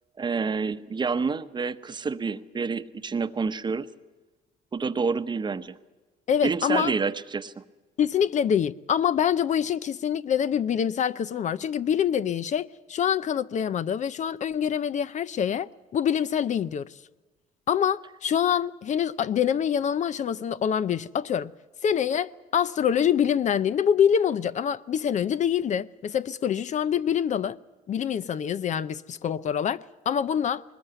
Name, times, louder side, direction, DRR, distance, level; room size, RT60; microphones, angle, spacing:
voice 1, 0.2-3.9 4.7-5.8 6.4-7.6, right 5 dB, 25° right, 1.0 m, -28 dB
voice 2, 6.3-6.9 8.0-16.9 17.7-21.5 21.8-27.6 27.9-30.6, left 8 dB, 45° left, 0.6 m, -25 dB
21.0 x 20.0 x 8.1 m
cardioid pair, 110°, 17 cm